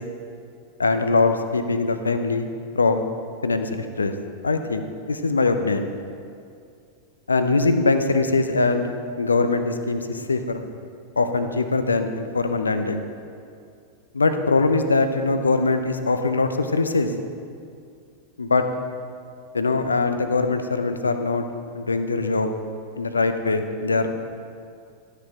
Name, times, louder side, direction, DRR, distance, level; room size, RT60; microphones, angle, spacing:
voice 1, 0.8-2.5 2.7-3.1 3.4-4.1 4.4-5.9 7.3-10.6 11.2-13.0 14.1-17.1 18.4-18.7 19.5-21.4 21.7-22.5 23.0-24.1, left 3 dB, 75° left, 8 dB, 0.6 m, -22 dB
12.5 x 6.7 x 4.8 m, 2.4 s
figure-of-eight pair, 90°, 0 cm